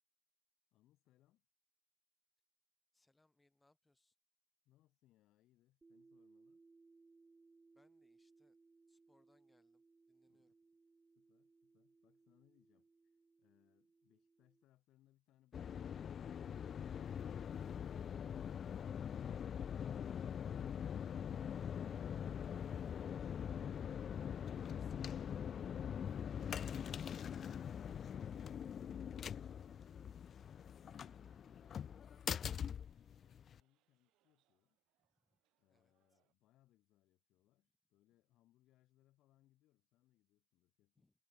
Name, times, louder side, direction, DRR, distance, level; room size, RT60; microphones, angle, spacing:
voice 1, 0.7-1.5 4.6-6.6 10.3-10.5 11.1-16.3 30.6-34.8 35.6-41.1, left 15 dB, 60° left, 7.4 m, -76 dB
voice 2, 2.9-4.1 7.7-8.6 8.9-10.5 24.3-25.3 35.2-35.4 35.7-36.2 40.9-41.1, left 2 dB, 10° left, 6.0 m, -76 dB
sound 1, 5.8-14.6, right 4 dB, 20° right, 5.4 m, -68 dB
sound 2, 15.5-33.6, left 8 dB, 40° left, 0.6 m, -43 dB
sound 3, 19.8-36.3, right 17 dB, 65° right, 6.5 m, -84 dB
supercardioid pair, 105°, 0 cm